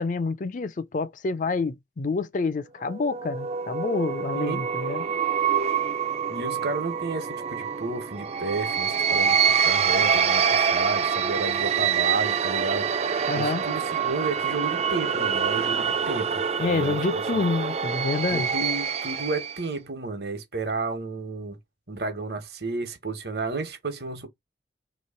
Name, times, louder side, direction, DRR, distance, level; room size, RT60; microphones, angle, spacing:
voice 1, 0.0-5.1 13.3-13.6 16.6-18.5, left 3 dB, 45° left, 0.4 m, -28 dB
sound 1, 2.9-19.7, right 7 dB, 35° right, 0.4 m, -26 dB
voice 2, 6.3-17.4 18.3-21.6 21.9-24.3, right 3 dB, 65° right, 1.2 m, -32 dB
3.2 x 3.1 x 4.3 m
head